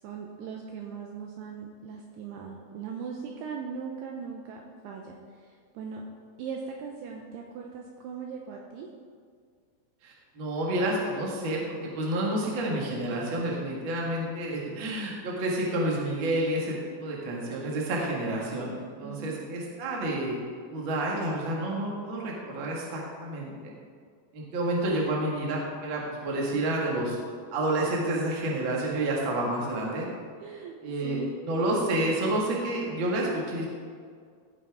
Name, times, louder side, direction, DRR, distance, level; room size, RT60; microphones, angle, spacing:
voice 1, 0.0-6.0 6.4-8.9 19.0-19.4 30.4-30.7 31.0-31.3, right 6 dB, 80° right, 1 dB, 2.4 m, -39 dB
voice 2, 10.0-20.3 20.7-23.7 24.3-27.2 27.5-30.1 30.8-31.2 31.4-33.7, right 1 dB, 55° right, -3 dB, 1.4 m, -29 dB
15.5 x 6.0 x 4.8 m, 2.1 s
omnidirectional pair, 5.4 m